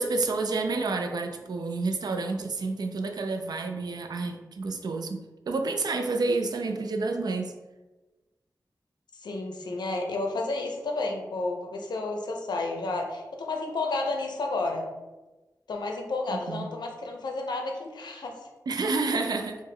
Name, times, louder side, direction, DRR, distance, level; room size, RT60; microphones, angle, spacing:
voice 1, 0.0-5.2 5.5-7.5 16.3-16.7 18.7-19.6, right 3 dB, 70° right, 5 dB, 0.4 m, -29 dB
voice 2, 9.2-14.9 15.7-18.5, left 2 dB, 85° left, 2 dB, 0.5 m, -31 dB
3.4 x 2.1 x 3.3 m, 1.2 s
wide cardioid pair, 90°, 7 cm